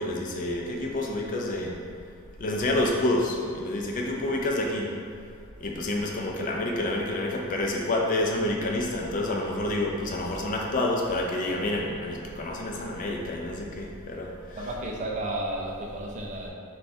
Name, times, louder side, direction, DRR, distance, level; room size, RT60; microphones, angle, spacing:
voice 1, 0.0-1.8 2.4-4.9 5.6-14.6, left 1 dB, 35° left, 0 dB, 0.3 m, -28 dB
voice 2, 14.5-16.5, right 1 dB, 35° right, -1 dB, 0.4 m, -32 dB
3.3 x 2.2 x 4.2 m, 2.2 s
head